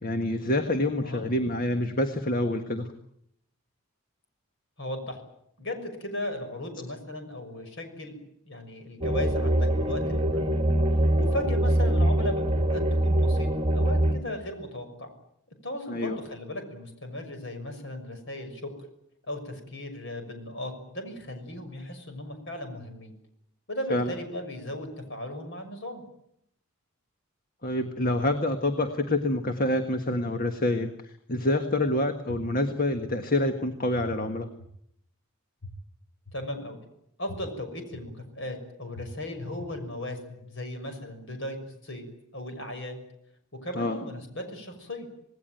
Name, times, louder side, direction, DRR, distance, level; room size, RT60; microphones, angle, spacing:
voice 1, 0.0-2.9 15.9-16.2 23.9-24.1 27.6-34.5 43.7-44.0, left 1 dB, 40° left, 6 dB, 1.6 m, -27 dB
voice 2, 4.8-5.2 5.6-10.4 11.2-15.1 15.6-18.7 19.3-23.1 23.7-26.0 36.3-36.8 37.2-41.6 41.8-42.1 42.3-43.0 43.5-45.1, left 1 dB, 55° left, 7 dB, 6.2 m, -36 dB
sound 1, 9.0-14.1, right 1 dB, 25° right, 2.6 m, -23 dB
sound 2, 32.3-32.4 32.9-33.0 33.9-34.0 34.6-34.7 35.6-35.7 36.3-36.4 37.3-37.4 37.9-38.0 38.9-39.0 39.6-39.7, left 4 dB, 85° left, 6.4 m, -42 dB
27.0 x 19.0 x 9.1 m, 0.75 s
head